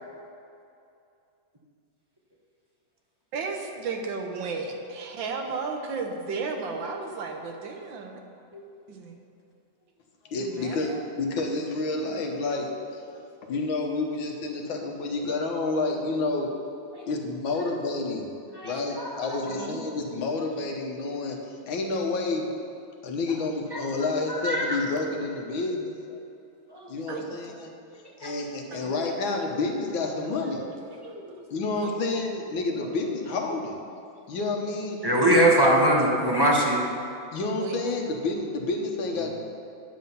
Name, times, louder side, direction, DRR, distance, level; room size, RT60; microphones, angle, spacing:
voice 1, 3.3-8.2 8.9-9.2 10.4-11.0 19.4-19.8 27.1-27.3 28.7-28.9 31.8-31.9 35.0-35.6 37.6-37.8, right 4 dB, 80° right, 3 dB, 1.7 m, -34 dB
voice 2, 10.3-13.2 13.4-16.5 17.1-18.4 18.6-22.5 23.0-26.3 26.9-27.7 28.2-30.6 31.5-33.8 34.3-35.1 37.3-39.3, left 3 dB, 90° left, 2 dB, 1.9 m, -29 dB
voice 3, 18.5-19.1 23.7-23.8 24.3-24.8 26.7-27.0 28.2-28.3 31.0-31.1 35.0-36.8, right 1 dB, 15° right, -3 dB, 0.8 m, -22 dB
9.8 x 7.7 x 5.5 m, 2.6 s
omnidirectional pair, 2.1 m